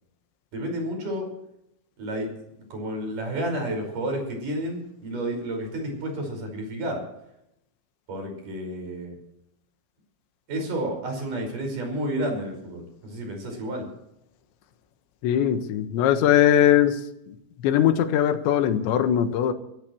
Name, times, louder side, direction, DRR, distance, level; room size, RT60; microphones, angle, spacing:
voice 1, 0.5-1.3 2.0-2.3 2.7-7.0 8.1-9.2 10.5-13.9, right 1 dB, 45° right, 3 dB, 6.6 m, -31 dB
voice 2, 15.2-17.0 17.3-17.4 17.6-19.5, left 10 dB, 70° left, 8 dB, 3.5 m, -20 dB
23.5 x 15.5 x 3.2 m, 0.80 s
omnidirectional pair, 5.5 m